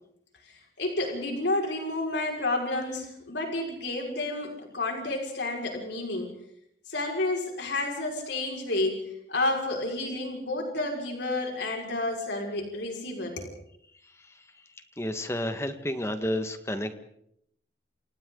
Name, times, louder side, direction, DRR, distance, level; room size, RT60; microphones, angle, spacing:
voice 1, 0.5-6.3 6.9-9.0 9.3-13.5, left 2 dB, 90° left, 1 dB, 5.5 m, -30 dB
voice 2, 15.0-16.9, left 1 dB, 15° left, 8 dB, 1.7 m, -31 dB
28.5 x 28.0 x 4.0 m, 0.73 s
head